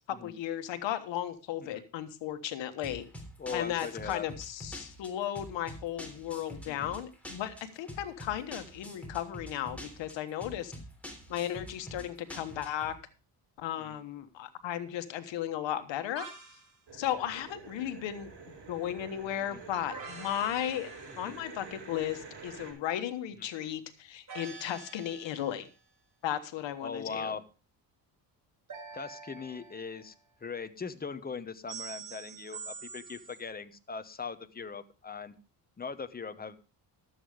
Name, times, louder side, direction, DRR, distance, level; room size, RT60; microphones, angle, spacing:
voice 1, 0.1-3.0 3.5-10.7 11.3-12.9 13.6-16.3 16.9-18.3 18.7-20.9 21.2-25.7 26.2-27.3, left 11 dB, 85° left, 10 dB, 1.4 m, -35 dB
sound 1, 2.8-12.9, equal, 5° left, 3.4 m, -46 dB
voice 2, 3.4-4.3 6.7-6.9 8.3-8.4 12.0-12.1 13.8-14.0 19.5-19.6 21.1-21.3 23.4-23.5 26.8-27.4 28.9-30.1 30.4-35.3 35.8-36.6, left 5 dB, 20° left, 10 dB, 0.9 m, -40 dB
sound 2, 16.2-16.7 19.9-21.6 24.3-25.7 28.7-30.2 31.7-33.4, right 5 dB, 45° right, 4.1 m, -46 dB
sound 3, 16.9-22.7, right 4 dB, 65° right, 5.4 m, -48 dB
12.5 x 8.0 x 4.9 m, 0.34 s
cardioid pair, 100°, 44 cm